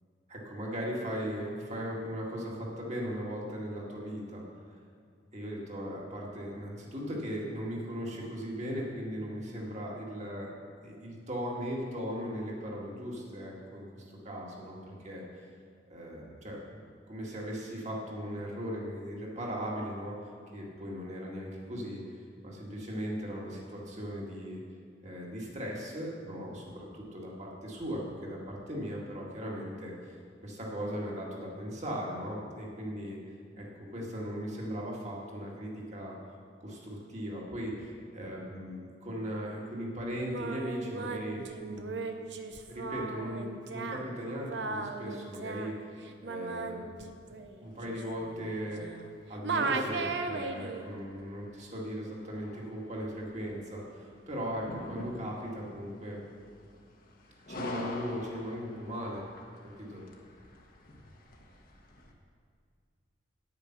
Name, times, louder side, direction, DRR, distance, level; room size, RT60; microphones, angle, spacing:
voice 1, 0.3-4.4 5.3-10.5 10.8-15.5 15.9-16.8 17.1-22.0 22.4-24.6 25.0-30.2 30.4-33.2 33.6-33.7 33.9-36.2 36.6-42.0 42.7-45.9 46.2-46.8 47.3-48.8 49.3-56.2 57.5-59.2 59.8-60.0, equal, 40° right, -3 dB, 2.1 m, -38 dB
Singing, 40.1-49.1 49.4-50.8, right 3 dB, 70° right, 0.7 m, -37 dB
sound 1, 47.6-62.1, left 1 dB, 50° left, 1.2 m, -48 dB
9.1 x 8.8 x 6.0 m, 2.2 s
head